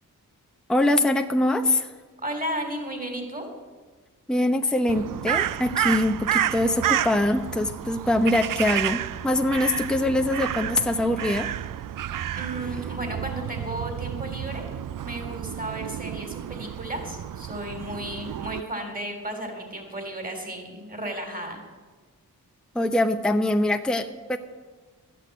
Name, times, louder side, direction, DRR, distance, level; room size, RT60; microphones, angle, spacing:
voice 1, 0.7-1.9 4.3-11.5 22.7-24.4, left 1 dB, ahead, 5 dB, 0.8 m, -23 dB
voice 2, 2.2-3.5 12.3-14.6 14.9-21.6, right 1 dB, 25° right, 4 dB, 3.5 m, -34 dB
Crow, 4.9-18.6, right 11 dB, 65° right, 0.5 m, -30 dB
12.5 x 8.4 x 7.9 m, 1.4 s
cardioid pair, 45°, 36 cm